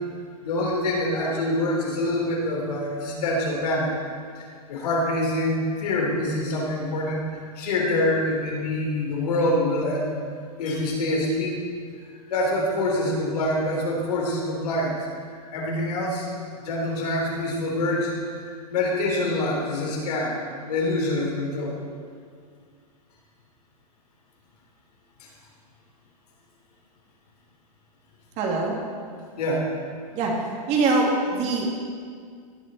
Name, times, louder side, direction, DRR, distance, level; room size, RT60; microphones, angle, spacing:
voice 1, 0.4-3.9 4.4-10.1 10.6-11.6 12.3-14.9 15.3-18.1 18.4-20.4 20.7-21.8 25.2-25.3 29.4-29.7, left 1 dB, 75° left, -1 dB, 3.6 m, -25 dB
voice 2, 28.4-28.8 30.1-30.3 30.7-31.6, right 3 dB, 35° right, -1 dB, 2.3 m, -23 dB
17.5 x 7.4 x 4.1 m, 2.1 s
hypercardioid pair, 145°, 20 cm